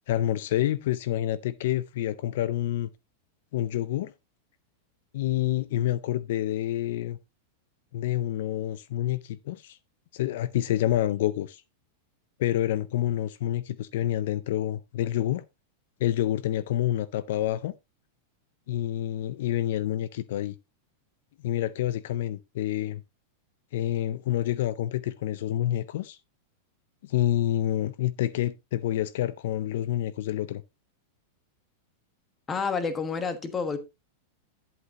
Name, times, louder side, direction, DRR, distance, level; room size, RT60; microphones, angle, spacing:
voice 1, 0.1-2.9 3.5-4.1 5.1-7.2 7.9-9.8 10.1-11.6 12.4-15.4 16.0-17.7 18.7-20.5 21.4-23.0 23.7-26.2 27.0-30.6, left 13 dB, 60° left, 0.5 m, -28 dB
voice 2, 32.5-33.8, left 5 dB, 15° left, 1.3 m, -29 dB
10.5 x 8.0 x 2.9 m
supercardioid pair, 160°, 0 cm